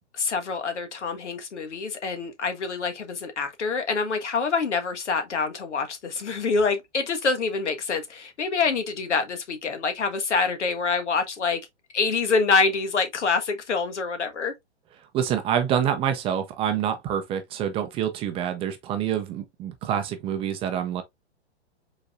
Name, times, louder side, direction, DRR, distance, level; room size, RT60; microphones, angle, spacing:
voice 1, 0.1-11.6 11.9-14.5, left 4 dB, 85° left, 1.4 m, -26 dB
voice 2, 15.1-21.0, right 9 dB, 15° right, 0.5 m, -27 dB
5.1 x 4.0 x 2.4 m
hypercardioid pair, 130°, 35 cm